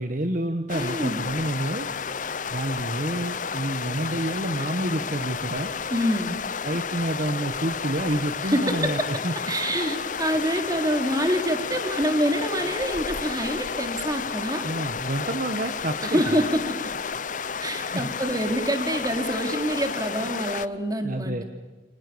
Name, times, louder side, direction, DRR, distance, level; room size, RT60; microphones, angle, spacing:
voice 1, 0.0-2.1 2.5-5.7 6.6-9.3 14.6-16.2 17.9-18.1 21.0-21.4, right 1 dB, 50° right, 8 dB, 1.6 m, -29 dB
sound 1, 0.7-20.7, left 6 dB, 45° left, 0.8 m, -32 dB
voice 2, 0.7-1.2 5.9-6.4 8.4-9.1 9.5-14.7 16.0-16.9 17.6-21.4, equal, 20° right, 6 dB, 3.9 m, -26 dB
30.0 x 26.5 x 7.1 m, 1.3 s
head